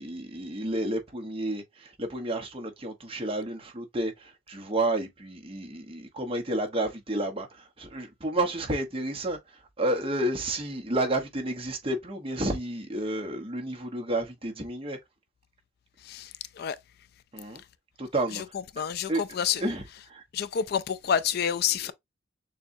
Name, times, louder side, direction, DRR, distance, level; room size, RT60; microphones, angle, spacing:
voice 1, 0.0-1.6 2.0-4.1 4.5-7.5 7.8-9.4 9.8-15.0 17.3-17.6 18.0-18.4 19.1-19.2 19.6-19.8 20.1-20.2 21.9-22.0, right 1 dB, 30° right, 1.1 m, -30 dB
voice 2, 18.8-19.6 20.3-21.9, left 8 dB, 50° left, 0.3 m, -28 dB
6.8 x 2.3 x 2.6 m
head